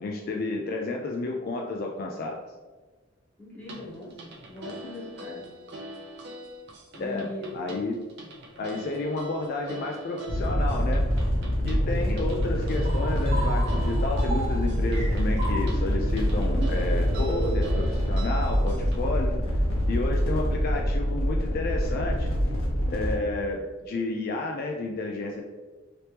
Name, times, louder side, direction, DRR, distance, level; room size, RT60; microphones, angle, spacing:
voice 1, 0.0-2.4 7.0-8.0 8.6-11.0 11.6-19.3 19.9-22.3 22.9-25.4, left 2 dB, 50° left, 1 dB, 0.3 m, -31 dB
voice 2, 3.4-5.5 6.9-7.5 8.5-8.8, left 1 dB, 10° left, -6 dB, 1.0 m, -41 dB
sound 1, 3.6-19.0, right 1 dB, 60° right, 0.5 m, -44 dB
sound 2, 10.3-23.2, equal, 70° left, 0.9 m, -25 dB
sound 3, 12.6-17.9, right 1 dB, 35° right, 0.9 m, -35 dB
2.9 x 2.9 x 3.2 m, 1.3 s
head